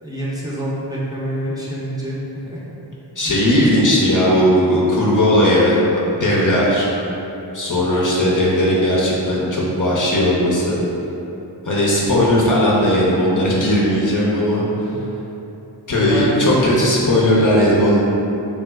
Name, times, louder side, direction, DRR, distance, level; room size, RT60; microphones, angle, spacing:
voice 1, 0.0-2.2 2.5-2.7 3.2-3.4 14.7-15.1 16.1-16.4, right 1 dB, 10° right, -8 dB, 0.7 m, -27 dB
voice 2, 3.2-5.8 6.2-6.9 7.5-10.8 11.6-14.6 15.9-18.0, left 1 dB, 45° left, -5 dB, 0.7 m, -17 dB
3.3 x 2.1 x 3.4 m, 2.9 s
cardioid pair, 45°, 44 cm